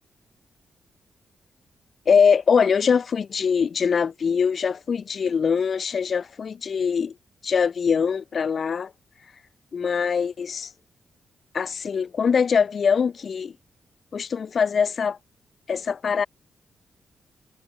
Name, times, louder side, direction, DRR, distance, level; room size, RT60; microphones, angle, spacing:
voice 1, 2.1-7.1 7.4-8.9 9.7-10.7 11.5-13.5 14.1-15.2 15.7-16.3, left 6 dB, 50° left, 4.5 m, -22 dB
cardioid pair, 100°, 0 cm